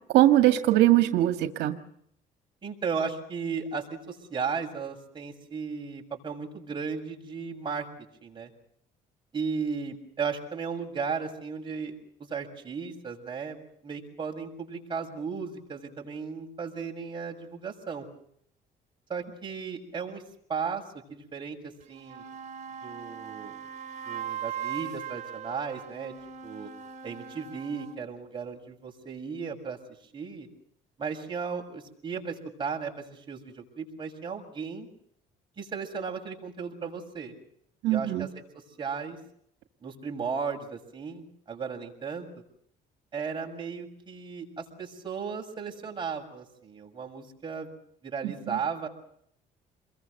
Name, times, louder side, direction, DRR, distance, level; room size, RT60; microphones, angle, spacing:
voice 1, 0.1-1.8 37.8-38.3 48.2-48.6, right 14 dB, 85° right, 8 dB, 1.9 m, -21 dB
voice 2, 2.6-7.9 8.2-8.5 9.3-18.1 19.1-20.2 20.5-20.8 21.1-22.2 22.8-23.6 24.0-26.1 26.4-26.7 27.0-29.8 30.1-30.5 31.0-34.9 35.6-37.3 37.9-39.2 39.8-42.3 43.1-47.7 48.0-48.9, right 5 dB, 30° right, 1 dB, 7.0 m, -35 dB
sound 1, 21.8-28.0, right 8 dB, 45° right, 5.6 m, -39 dB
28.5 x 22.5 x 6.7 m, 0.70 s
cardioid pair, 110°, 17 cm